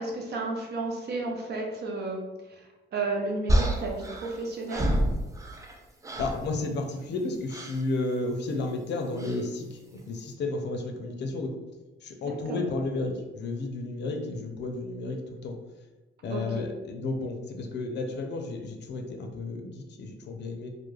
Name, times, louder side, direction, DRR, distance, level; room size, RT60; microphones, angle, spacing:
voice 1, 0.0-5.0 12.2-12.6 16.3-16.7, right 2 dB, 55° right, 1 dB, 0.6 m, -33 dB
sound 1, 3.5-5.8 6.0-6.5 7.5-7.8 9.2-9.4, right 1 dB, 15° right, 0.4 m, -28 dB
voice 2, 6.2-11.6 12.0-15.6 16.2-20.7, left 2 dB, 60° left, 4 dB, 0.5 m, -32 dB
2.3 x 2.1 x 3.1 m, 1.1 s
cardioid pair, 90°, 20 cm